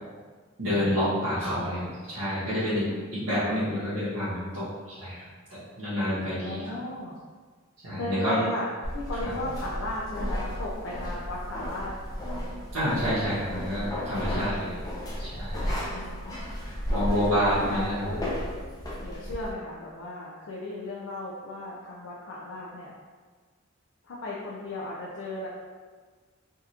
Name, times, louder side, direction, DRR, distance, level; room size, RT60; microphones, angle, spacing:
voice 1, 0.6-4.7 5.0-5.1 5.8-6.6 7.8-8.4 9.2-9.3 12.7-14.8 15.2-15.7 16.9-18.2, equal, 90° right, -15 dB, 1.3 m, -28 dB
voice 2, 1.1-1.9 6.4-7.2 7.9-12.0 15.9-16.2 17.1-18.3 19.0-22.9 24.0-25.5, left 1 dB, 65° left, -5 dB, 0.5 m, -35 dB
sound 1, 8.8-19.5, equal, 20° left, 0.6 m, -34 dB
3.6 x 2.4 x 2.8 m, 1.5 s
head